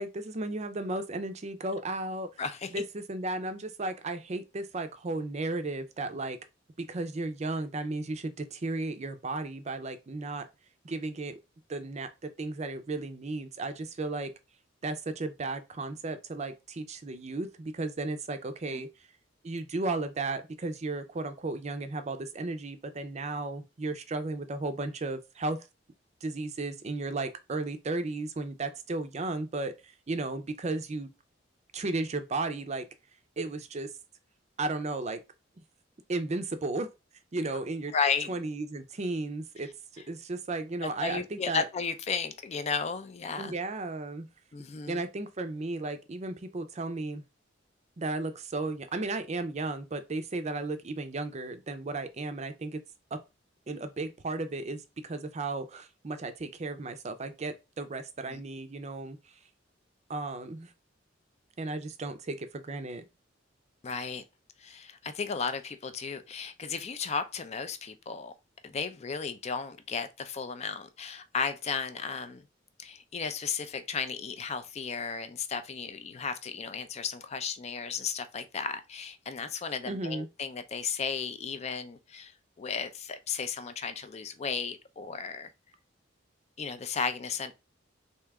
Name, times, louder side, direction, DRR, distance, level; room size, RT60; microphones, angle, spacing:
voice 1, 0.0-2.3 2.7-6.4 6.8-10.5 10.8-11.4 11.7-14.3 14.8-18.9 19.4-25.6 26.2-31.1 31.7-32.9 33.4-33.9 34.6-35.2 36.1-36.9 37.3-37.9 38.3-41.7 43.4-44.3 44.9-47.2 48.0-52.8 53.1-53.2 53.7-59.2 60.1-60.7 61.6-63.0 79.9-80.3, right 2 dB, 35° right, 0.5 m, -34 dB
voice 2, 2.4-2.8 18.7-18.8 37.9-38.3 40.8-43.5 44.5-45.0 58.3-58.4 63.8-64.2 64.6-68.3 68.6-72.4 72.8-85.5 86.6-87.5, left 5 dB, 35° left, 0.4 m, -34 dB
3.4 x 2.8 x 3.4 m
head